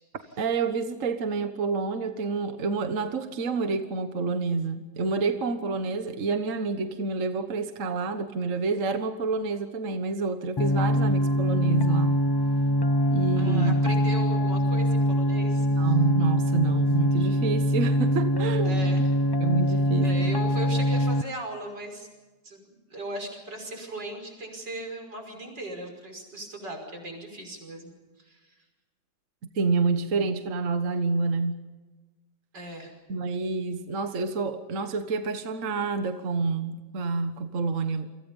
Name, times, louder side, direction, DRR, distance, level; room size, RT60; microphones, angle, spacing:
voice 1, 0.4-12.1 13.1-13.8 15.8-18.9 19.4-20.3 29.5-31.6 33.1-38.1, right 4 dB, 50° right, 8 dB, 1.6 m, -28 dB
sound 1, 10.6-21.2, equal, 30° left, 0.4 m, -23 dB
voice 2, 13.4-15.7 18.6-19.1 20.0-22.1 22.4-27.9 28.2-28.5 32.5-32.9, right 1 dB, 90° right, 4 dB, 6.2 m, -38 dB
29.0 x 24.5 x 5.5 m, 1.2 s
omnidirectional pair, 1.8 m